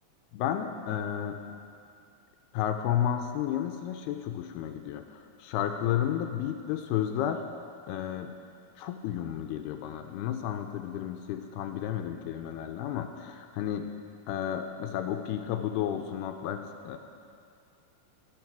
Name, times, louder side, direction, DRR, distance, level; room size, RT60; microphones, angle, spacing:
voice 1, 0.3-1.4 2.5-7.4 7.9-8.4 8.8-13.9 14.3-17.0, left 10 dB, 85° left, 6 dB, 2.6 m, -32 dB
25.0 x 8.7 x 4.6 m, 2.4 s
omnidirectional pair, 4.7 m